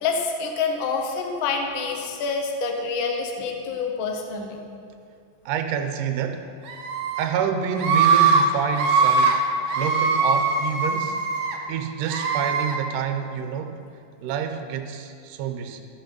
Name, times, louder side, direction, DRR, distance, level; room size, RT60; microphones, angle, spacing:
voice 1, 0.0-4.6, left 4 dB, 80° left, 2 dB, 1.1 m, -27 dB
voice 2, 5.5-6.5 7.2-9.4 9.8-11.2 11.7-13.8 14.2-15.8, right 7 dB, 85° right, 7 dB, 2.2 m, -28 dB
Screaming, 6.7-7.2 7.8-8.4 8.7-9.3 9.7-11.6 12.0-12.7, right 5 dB, 60° right, 1.6 m, -21 dB
14.0 x 6.0 x 5.2 m, 2.4 s
omnidirectional pair, 3.8 m